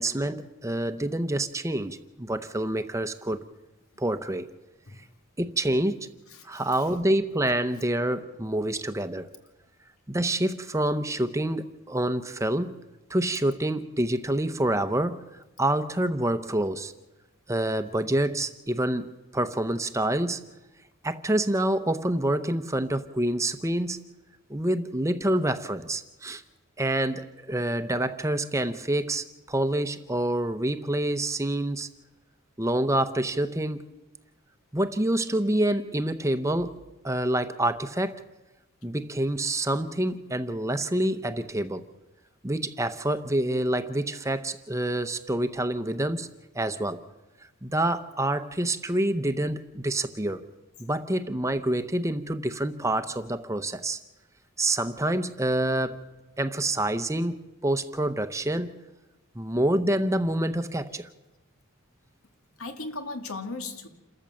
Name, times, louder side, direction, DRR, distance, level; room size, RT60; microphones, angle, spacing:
voice 1, 0.0-3.4 4.0-4.5 5.4-6.1 6.4-9.3 10.1-12.7 13.1-15.2 15.6-16.9 17.5-20.4 21.0-24.0 24.5-26.4 26.8-31.9 32.6-33.8 34.7-36.8 37.0-38.2 38.8-41.8 42.4-46.3 46.5-47.0 47.6-50.4 50.8-54.0 54.6-56.0 56.4-58.8 59.3-61.1, right 1 dB, 15° right, 10 dB, 0.8 m, -27 dB
voice 2, 6.3-6.6 62.6-63.9, left 3 dB, 80° left, 6 dB, 2.1 m, -37 dB
28.0 x 14.0 x 7.6 m, 1.1 s
head